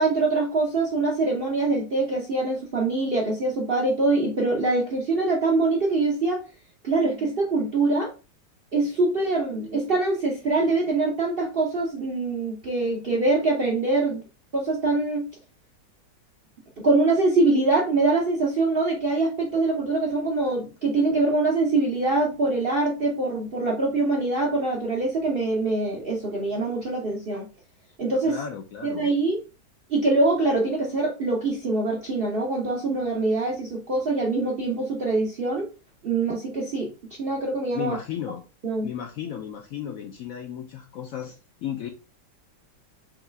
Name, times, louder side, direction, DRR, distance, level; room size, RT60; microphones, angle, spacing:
voice 1, 0.0-6.4 6.8-8.1 8.7-14.2 14.5-15.3 16.8-27.4 28.0-28.4 28.8-29.4 29.9-35.7 36.0-36.9 37.2-38.0 38.6-38.9, right 3 dB, 50° right, -2 dB, 0.6 m, -24 dB
voice 2, 28.2-29.1 37.7-38.4 38.8-41.9, left 9 dB, 65° left, 3 dB, 0.8 m, -34 dB
5.6 x 2.3 x 3.3 m, 0.32 s
omnidirectional pair, 1.9 m